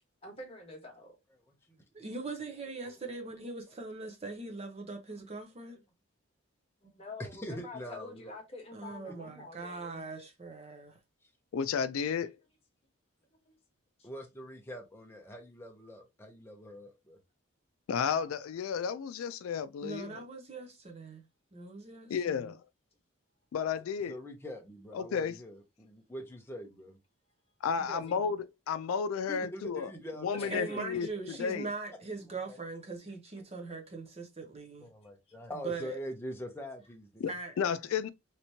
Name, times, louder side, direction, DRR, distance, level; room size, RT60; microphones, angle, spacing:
voice 1, 0.2-1.2 6.8-10.0 13.4-13.5 14.0-14.1 27.8-28.3 30.3-31.1, left 2 dB, 30° left, 1.2 m, -46 dB
voice 2, 1.9-5.8 8.7-11.0 19.8-21.2 21.5-22.5 30.5-34.9 35.6-36.0 37.3-37.5, right 3 dB, 30° right, 0.7 m, -41 dB
voice 3, 7.4-8.3 14.0-17.2 24.1-27.0 29.3-30.8 32.3-32.6 33.7-33.8 34.8-37.3, equal, 10° left, 0.7 m, -44 dB
voice 4, 11.5-12.3 17.9-20.2 22.1-22.6 23.5-24.2 24.9-25.3 27.6-28.4 28.7-29.9 30.2-31.1 31.4-31.7 37.2-37.3 37.6-38.1, left 6 dB, 80° left, 0.3 m, -32 dB
3.2 x 2.9 x 2.7 m
head